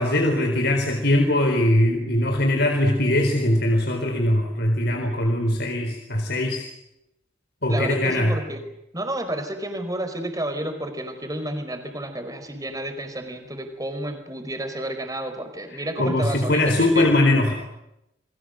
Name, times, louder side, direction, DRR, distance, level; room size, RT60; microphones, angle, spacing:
voice 1, 0.0-6.7 7.6-8.3 15.7-17.5, left 1 dB, 55° left, 4 dB, 4.2 m, -21 dB
voice 2, 7.7-8.6 8.9-17.1, right 1 dB, 20° right, 7 dB, 4.8 m, -31 dB
29.5 x 23.0 x 8.0 m, 0.86 s
head